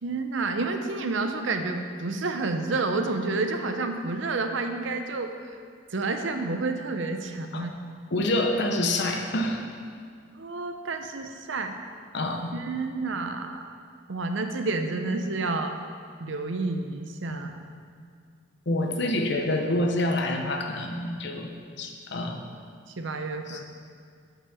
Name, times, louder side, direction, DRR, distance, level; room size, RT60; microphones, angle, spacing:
voice 1, 0.0-5.5 5.9-7.7 10.4-11.7 12.5-13.6 14.1-15.8 16.2-17.5 23.0-23.6, right 3 dB, 65° right, 6 dB, 0.6 m, -29 dB
voice 2, 8.1-9.6 12.1-12.5 17.3-17.5 18.7-21.5 21.8-22.4 23.5-23.6, left 1 dB, 55° left, 3 dB, 0.8 m, -27 dB
6.9 x 5.9 x 6.9 m, 2.1 s
head